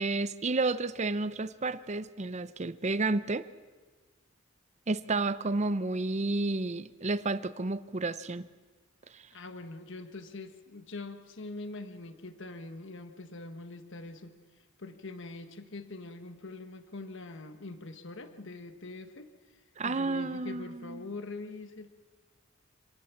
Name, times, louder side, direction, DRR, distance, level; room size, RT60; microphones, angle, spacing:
voice 1, 0.0-3.5 4.9-8.5 9.1-9.2 19.8-21.0, right 3 dB, 35° right, 14 dB, 0.7 m, -31 dB
voice 2, 9.3-21.9, left 2 dB, 60° left, 9 dB, 1.4 m, -44 dB
26.5 x 18.5 x 7.2 m, 1.4 s
head